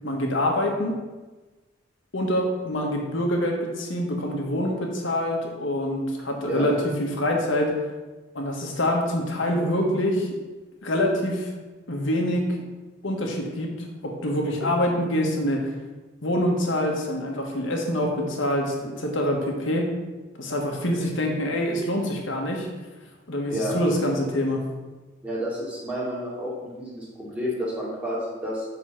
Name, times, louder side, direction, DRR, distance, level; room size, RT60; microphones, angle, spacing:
voice 1, 0.0-1.0 2.1-7.7 8.3-10.3 10.8-11.5 11.9-12.5 13.0-13.7 14.0-15.7 16.2-19.9 20.4-22.7 23.3-24.6, left 1 dB, 65° left, 1 dB, 1.4 m, -25 dB
voice 2, 25.2-28.7, equal, 5° right, -6 dB, 2.1 m, -30 dB
7.0 x 3.9 x 5.8 m, 1.2 s
head